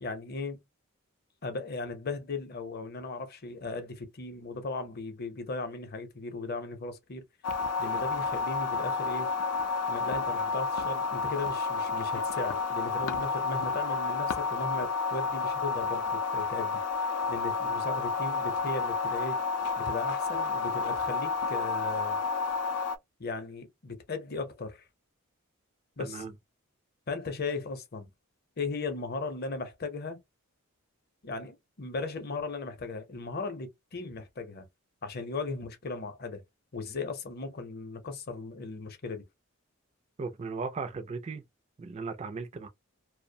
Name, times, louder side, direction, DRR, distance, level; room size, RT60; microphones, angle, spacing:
voice 1, 0.0-0.6 1.4-7.2 7.8-9.3 9.9-16.8 17.3-19.4 19.8-22.2 23.2-24.8 26.0-26.2 27.1-28.1 28.6-30.2 31.2-34.7 35.0-36.4 36.7-39.2, left 3 dB, 45° left, 0.6 m, -37 dB
sound 1, 7.4-23.0, left 4 dB, 90° left, 0.4 m, -30 dB
voice 2, 26.0-26.3 40.2-41.4 41.8-42.7, right 4 dB, 30° right, 0.3 m, -37 dB
2.5 x 2.0 x 2.6 m
head